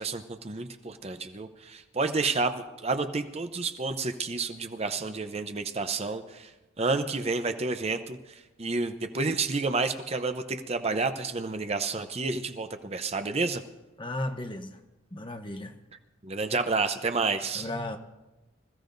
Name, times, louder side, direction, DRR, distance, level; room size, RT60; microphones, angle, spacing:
voice 1, 0.0-6.5 6.8-13.6 16.2-17.7, right 3 dB, 30° right, 8 dB, 0.7 m, -30 dB
voice 2, 14.0-14.8 15.1-15.7 17.5-18.0, left 1 dB, 25° left, 6 dB, 0.9 m, -34 dB
26.0 x 15.0 x 2.6 m, 1.1 s
head